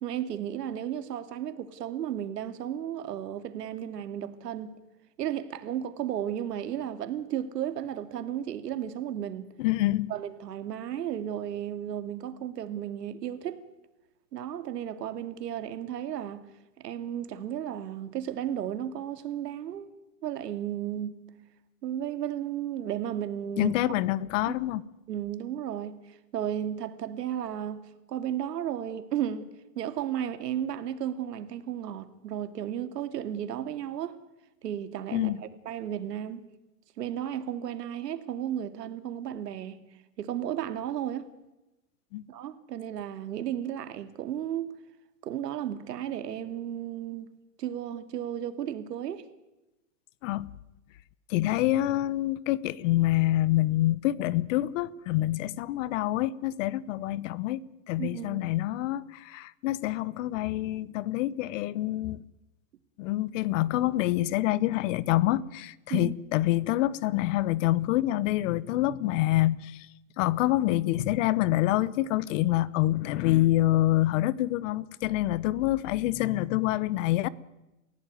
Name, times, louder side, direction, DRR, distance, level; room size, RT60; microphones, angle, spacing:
voice 1, 0.0-4.7 5.2-9.5 10.1-13.6 14.3-16.4 16.8-19.9 20.2-21.3 21.8-23.7 24.4-24.5 25.1-27.8 28.1-34.2 34.6-36.4 37.0-39.8 40.2-41.3 42.3-44.8 45.2-47.3 47.6-49.3 58.0-58.4 65.9-66.1, right 10 dB, 80° right, 2.5 m, -34 dB
voice 2, 9.6-10.1 23.6-24.8 35.1-35.4 42.1-42.2 50.2-50.5 51.3-62.2 63.0-69.9 70.2-77.3, left 15 dB, 50° left, 1.1 m, -26 dB
28.5 x 16.0 x 9.5 m
hypercardioid pair, 135°, 47 cm